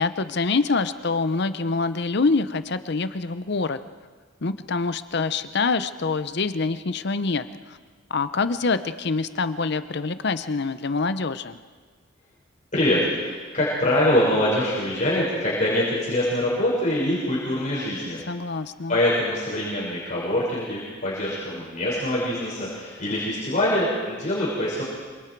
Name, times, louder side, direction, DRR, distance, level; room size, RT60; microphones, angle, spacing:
voice 1, 0.0-3.8 4.4-7.8 8.1-11.6 18.3-19.0, left 4 dB, 55° left, 12 dB, 0.7 m, -25 dB
voice 2, 12.7-18.2 18.9-24.8, left 1 dB, 40° left, -7 dB, 5.8 m, -24 dB
27.0 x 25.0 x 4.7 m, 1.5 s
head